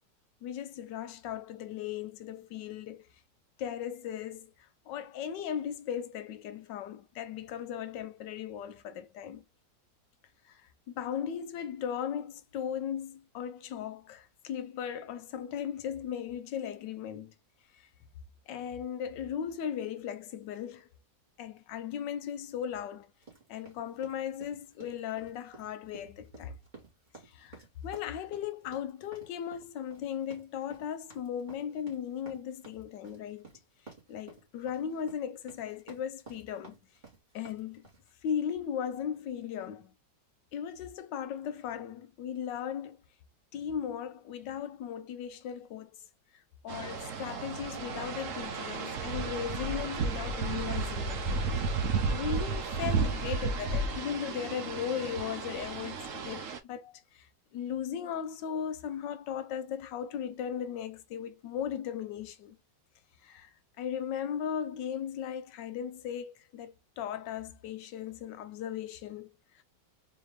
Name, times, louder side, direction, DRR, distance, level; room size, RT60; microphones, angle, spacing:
voice 1, 0.4-3.1 3.6-4.5 4.9-9.4 10.4-10.6 10.9-17.3 18.5-20.9 21.4-23.1 23.5-26.6 27.3-27.6 27.8-33.5 34.1-36.8 37.3-37.9 38.2-39.9 40.5-43.0 43.5-46.0 46.6-51.3 51.6-51.8 52.1-57.3 57.5-62.6 63.2-63.5 63.8-69.3, left 8 dB, 85° left, 1.3 m, -37 dB
sound 1, 23.2-38.1, right 3 dB, 25° right, 1.9 m, -53 dB
sound 2, 46.7-56.6, right 4 dB, 55° right, 1.0 m, -33 dB
3.9 x 2.9 x 3.3 m
omnidirectional pair, 1.9 m